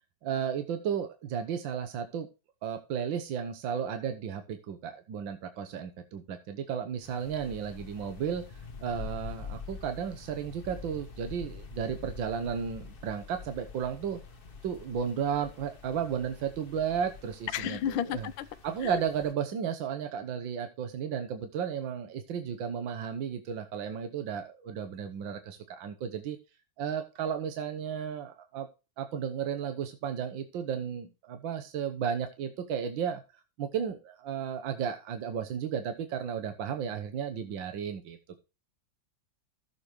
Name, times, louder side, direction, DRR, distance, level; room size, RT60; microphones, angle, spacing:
voice 1, 0.2-2.3 2.6-8.4 8.8-14.2 14.6-18.3 18.6-26.4 26.8-28.7 29.0-33.2 33.6-38.4, right 7 dB, 80° right, 1.8 m, -34 dB
sound 1, 7.0-19.3, left 5 dB, 35° left, 1.0 m, -46 dB
voice 2, 17.5-18.5, left 10 dB, 80° left, 1.5 m, -31 dB
15.5 x 6.8 x 3.1 m
omnidirectional pair, 2.1 m